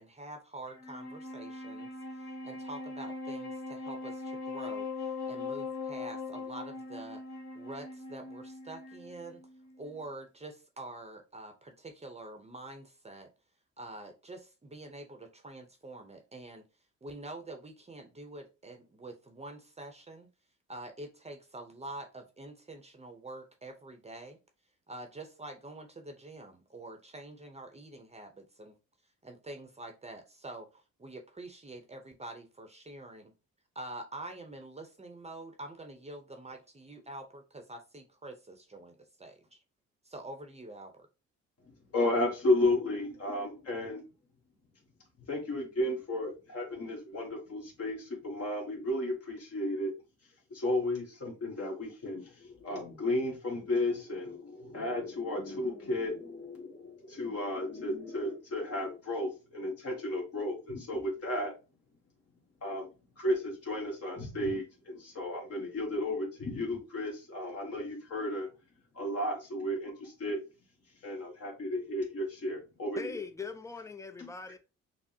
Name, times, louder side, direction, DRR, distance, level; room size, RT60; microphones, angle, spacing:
voice 1, 0.0-7.2 7.5-9.4 9.8-13.3 13.8-16.6 17.0-20.3 20.7-24.4 24.9-28.7 29.2-33.3 33.7-39.6 40.0-41.1, right 2 dB, 20° right, 0.7 m, -46 dB
Wind instrument woodwind instrument, 0.7-10.2, left 3 dB, 70° left, 1.3 m, -41 dB
voice 2, 41.9-44.0 45.3-49.9 50.5-61.5 62.6-62.9 63.2-68.5 68.9-70.4 71.0-73.2 74.2-74.3, left 1 dB, 50° left, 1.3 m, -33 dB
voice 3, 73.0-74.6, left 4 dB, 10° left, 0.4 m, -41 dB
5.8 x 2.0 x 2.7 m
cardioid pair, 90°, 30 cm